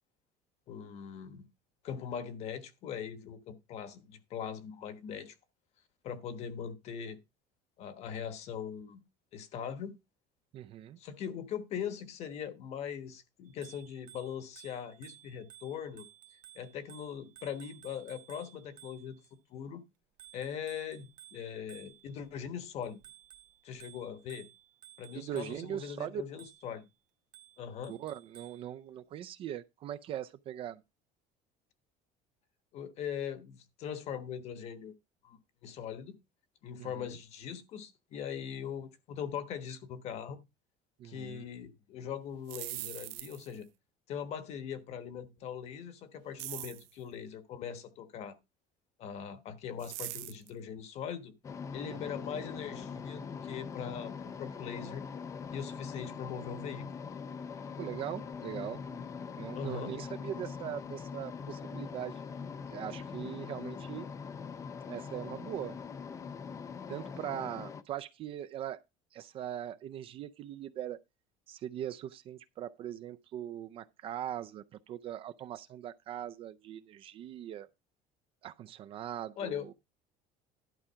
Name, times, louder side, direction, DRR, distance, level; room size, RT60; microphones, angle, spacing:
voice 1, 0.7-1.5 1.8-5.3 6.0-7.2 7.8-9.0 9.3-9.9 11.0-16.1 16.5-19.2 19.5-19.8 20.3-23.0 23.6-24.5 25.0-26.8 27.6-27.9 32.7-34.9 35.2-36.1 36.6-40.4 41.0-43.7 44.1-48.4 49.0-51.3 51.7-55.0 55.5-56.9 59.6-59.9 79.4-79.7, left 8 dB, 45° left, 1.2 m, -41 dB
voice 2, 10.5-11.0 25.1-26.2 27.9-30.8 36.8-37.1 41.0-41.5 51.9-52.2 57.8-59.0 59.4-62.2 62.7-64.1 64.8-65.8 66.9-68.8 69.1-71.0 71.5-77.7 78.4-79.7, right 11 dB, 35° right, 0.4 m, -41 dB
Bicycle bell, 13.5-19.3 20.2-22.3 22.8-25.8 26.4-26.8 27.3-28.7, right 12 dB, 55° right, 1.4 m, -56 dB
sound 1, 42.3-43.6 46.4-46.9 49.8-50.5, right 20 dB, 90° right, 0.6 m, -41 dB
sound 2, 51.4-67.8, left 6 dB, 20° left, 0.4 m, -42 dB
11.5 x 4.8 x 5.7 m
cardioid pair, 175°, 16 cm